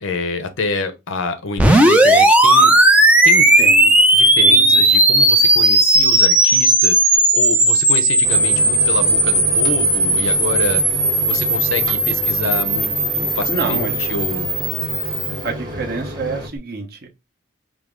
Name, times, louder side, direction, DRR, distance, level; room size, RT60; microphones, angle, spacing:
voice 1, 0.0-2.7 3.2-3.5 4.1-11.0 11.2-14.5, left 3 dB, 70° left, 0.7 m, -27 dB
sound 1, 1.6-15.4, right 1 dB, 5° right, 0.4 m, -15 dB
voice 2, 3.6-4.0 4.4-4.8 13.5-14.0 15.4-17.1, right 4 dB, 50° right, 1.0 m, -28 dB
Microwave oven, 8.2-16.5, equal, 20° right, 1.2 m, -31 dB
4.9 x 2.0 x 3.6 m
head